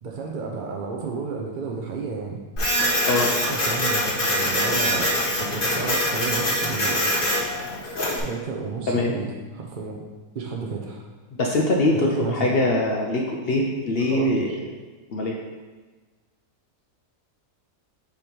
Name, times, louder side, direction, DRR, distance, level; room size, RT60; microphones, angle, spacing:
voice 1, 0.0-2.4 3.5-7.0 8.2-10.0 10.3-11.0 12.0-12.5 13.9-14.6, right 5 dB, 55° right, 0 dB, 0.5 m, -32 dB
Printer, 2.6-8.2, equal, 35° left, 1.5 m, -24 dB
voice 2, 11.4-14.6 15.1-15.4, left 2 dB, 55° left, -1 dB, 0.6 m, -22 dB
7.1 x 3.0 x 5.2 m, 1.3 s
omnidirectional pair, 1.6 m